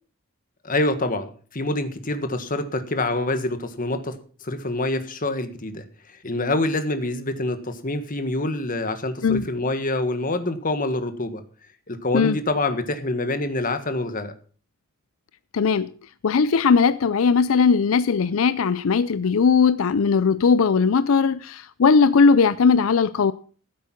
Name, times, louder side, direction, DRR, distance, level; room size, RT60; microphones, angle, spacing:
voice 1, 0.6-4.1 4.4-5.8 6.2-11.4 11.9-14.3, left 2 dB, 40° left, 1.6 m, -26 dB
voice 2, 15.5-15.9 16.2-23.3, left 5 dB, 80° left, 0.5 m, -18 dB
15.0 x 8.4 x 5.9 m
head